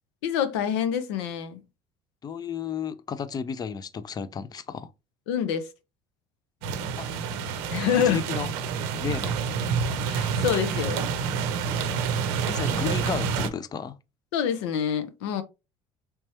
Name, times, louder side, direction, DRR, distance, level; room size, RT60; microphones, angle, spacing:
voice 1, 0.2-1.6 5.3-5.7 7.7-8.2 10.1-11.1 14.3-15.4, left 8 dB, 85° left, 0.7 m, -26 dB
voice 2, 2.2-4.9 7.0-7.1 7.9-8.5 9.0-9.4 11.7-11.9 12.5-14.0, left 7 dB, 30° left, 0.4 m, -33 dB
sound 1, 6.6-13.5, right 6 dB, 80° right, 0.6 m, -28 dB
3.5 x 3.0 x 2.9 m
supercardioid pair, 80°, 14 cm